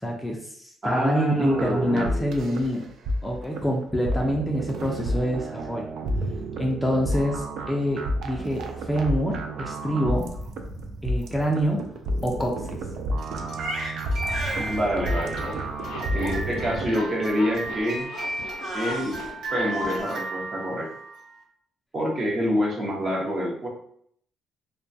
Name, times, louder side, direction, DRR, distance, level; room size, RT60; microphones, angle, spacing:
voice 1, 0.0-2.8 3.2-5.9 6.6-10.3 11.0-11.8 12.2-12.8, equal, 10° left, -1 dB, 0.4 m, -26 dB
voice 2, 0.8-2.3 14.6-15.7 16.1-18.1 18.7-19.2 19.5-20.9 21.9-23.7, equal, 35° right, -1 dB, 0.7 m, -26 dB
sound 1, 1.4-16.9, right 1 dB, 70° right, 0.3 m, -31 dB
Crying sobbing, 13.2-21.3, right 2 dB, 90° right, 1.2 m, -34 dB
Zipper (clothing), 15.0-20.1, left 4 dB, 90° left, 0.5 m, -39 dB
2.2 x 2.2 x 2.6 m, 0.65 s
cardioid pair, 105°, 0 cm